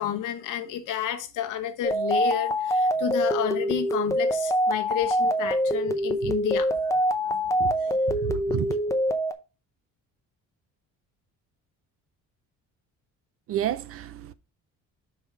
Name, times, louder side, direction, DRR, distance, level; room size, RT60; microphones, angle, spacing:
voice 1, 0.0-6.9 7.3-7.4 7.8-8.0, left 10 dB, 70° left, 1.2 m, -31 dB
sound 1, 1.8-9.3, equal, 10° left, 0.5 m, -25 dB
voice 2, 8.1-8.8 13.5-14.3, right 12 dB, 45° right, 0.5 m, -30 dB
5.4 x 4.7 x 5.5 m
cardioid pair, 170°, 32 cm